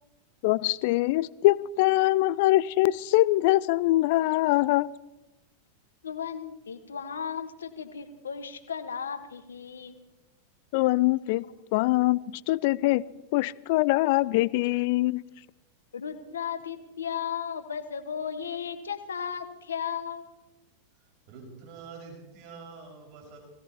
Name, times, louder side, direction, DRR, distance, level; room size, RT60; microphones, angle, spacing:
voice 1, 0.4-4.9 10.7-11.4 11.7-12.2 12.5-13.0 13.3-15.2, left 18 dB, 50° left, 0.4 m, -23 dB
voice 2, 6.0-10.0 15.9-20.4, left 7 dB, 70° left, 1.5 m, -35 dB
voice 3, 21.3-23.4, right 4 dB, 45° right, 5.4 m, -46 dB
20.0 x 16.5 x 4.2 m
figure-of-eight pair, 90°, 0 cm